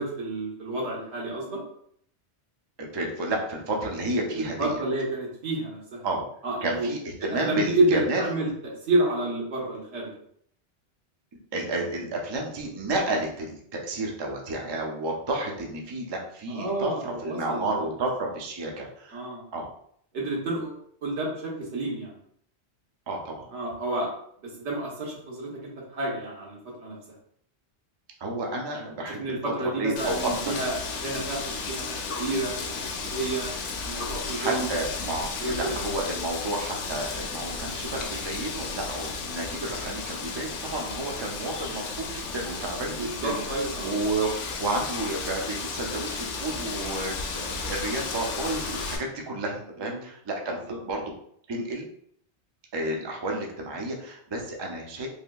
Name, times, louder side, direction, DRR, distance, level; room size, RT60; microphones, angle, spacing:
voice 1, 0.0-1.6 4.4-6.0 6.4-6.9 7.4-8.5 8.9-10.1 16.5-17.7 18.0-18.1 19.1-19.4 20.1-22.1 23.5-24.1 24.4-27.0 28.7-28.8 29.2-30.7 31.0-33.5 33.8-34.7 35.4-35.8 42.8-43.9 49.8-50.0 50.5-50.8, right 2 dB, 85° right, -3 dB, 1.3 m, -30 dB
voice 2, 2.8-4.8 6.0-6.2 6.6-8.2 11.5-19.2 19.5-19.7 23.1-23.5 28.2-29.2 29.6-30.5 34.3-50.6 50.8-51.1 51.5-51.9 52.7-55.1, right 2 dB, 40° right, 0 dB, 0.3 m, -31 dB
Wind, 30.0-49.0, left 4 dB, 85° left, 0.9 m, -34 dB
3.4 x 2.6 x 2.2 m, 0.66 s
omnidirectional pair, 1.2 m